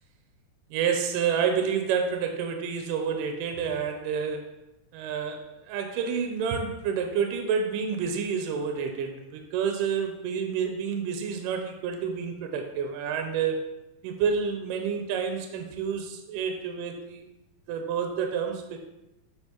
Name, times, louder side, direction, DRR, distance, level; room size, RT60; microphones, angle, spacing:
voice 1, 0.7-4.5 4.9-13.6 14.0-17.2 17.7-18.8, right 6 dB, 80° right, 4 dB, 2.2 m, -29 dB
8.0 x 4.7 x 2.9 m, 0.94 s
omnidirectional pair, 4.0 m